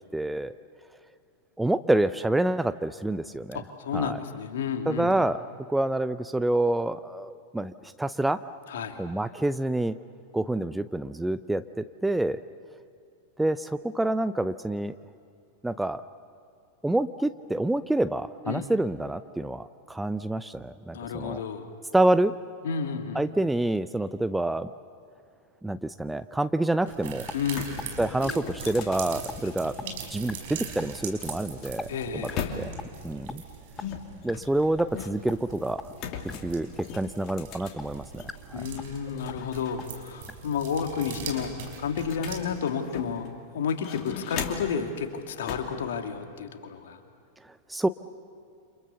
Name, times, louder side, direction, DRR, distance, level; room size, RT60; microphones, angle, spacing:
voice 1, 0.1-0.5 1.6-3.6 3.9-4.2 4.9-5.4 5.7-8.4 9.0-10.0 10.3-12.4 13.4-15.0 15.6-16.0 16.8-21.4 21.9-22.3 23.1-24.7 25.6-27.3 28.0-29.8 30.1-32.3 32.6-32.7 33.0-33.4 34.2-35.9 36.4-38.2 38.5-38.7 47.7-47.9, right 1 dB, 5° right, 13 dB, 0.6 m, -27 dB
voice 2, 3.5-5.1 8.7-9.0 18.5-18.7 20.9-21.7 22.6-23.2 27.3-27.8 31.9-32.5 38.5-41.5 41.8-47.0, left 7 dB, 60° left, 5 dB, 2.4 m, -31 dB
sound 1, 26.9-27.0 27.3-30.1 30.9-33.0 33.8-35.4 35.9-38.4 38.8-39.9 40.2-40.3 40.7-43.3 43.7-44.8 45.5-45.8, left 7 dB, 40° left, 2.8 m, -39 dB
sound 2, 26.9-42.4, right 7 dB, 55° right, 5.3 m, -42 dB
sound 3, 27.3-27.4 27.8-27.9 28.3-28.4 28.8-29.0 29.3-29.4 29.8-29.9 30.3-30.4 30.8-30.9 31.3-31.4 31.8-31.9 32.3-32.5 32.8-32.9 33.3-33.4 33.8-33.9 34.3-34.4 34.8-34.9 35.3-35.4 35.8-35.9 36.3-36.4 36.8-36.9 37.3-37.4 37.8-37.9 38.3-38.4 38.8-39.0 39.3-39.4 39.8-39.9 40.3-40.4 40.8-40.9, left 3 dB, 10° left, 1.0 m, -37 dB
29.5 x 27.5 x 7.0 m, 2.5 s
figure-of-eight pair, 90°, 0 cm